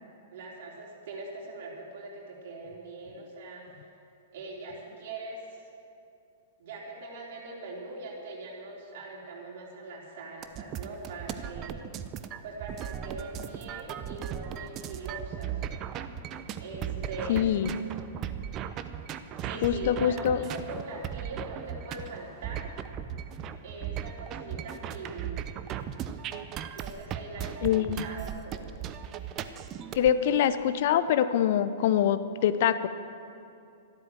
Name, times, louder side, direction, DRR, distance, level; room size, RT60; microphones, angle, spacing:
voice 1, 0.3-3.9 4.3-5.7 6.6-11.8 12.4-15.6 16.6-17.5 19.4-22.7 23.6-25.5 26.7-28.7, right 2 dB, 50° right, -3 dB, 4.0 m, -42 dB
sound 1, 10.4-30.1, right 9 dB, 30° right, 0.7 m, -37 dB
voice 2, 17.3-17.7 19.6-20.4 27.6-28.1 29.9-32.9, left 10 dB, 50° left, 12 dB, 0.6 m, -24 dB
13.0 x 12.5 x 7.7 m, 2.7 s
figure-of-eight pair, 105°, 0 cm